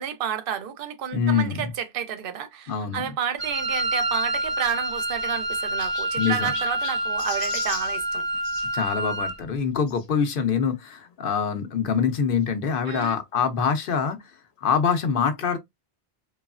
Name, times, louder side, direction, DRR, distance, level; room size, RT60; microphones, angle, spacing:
voice 1, 0.0-8.3 12.9-13.2, right 8 dB, 65° right, 0.8 m, -31 dB
voice 2, 1.1-1.7 2.7-3.1 6.2-6.5 8.7-14.2 14.6-15.6, left 6 dB, 65° left, 0.8 m, -24 dB
Wind instrument woodwind instrument, 3.4-9.4, right 1 dB, 45° right, 0.3 m, -27 dB
Chirp tweet, 4.4-8.7 9.9-10.1 10.8-10.9 11.1-11.2 12.4-12.5, left 5 dB, 85° left, 1.0 m, -39 dB
3.1 x 2.3 x 2.4 m
omnidirectional pair, 1.0 m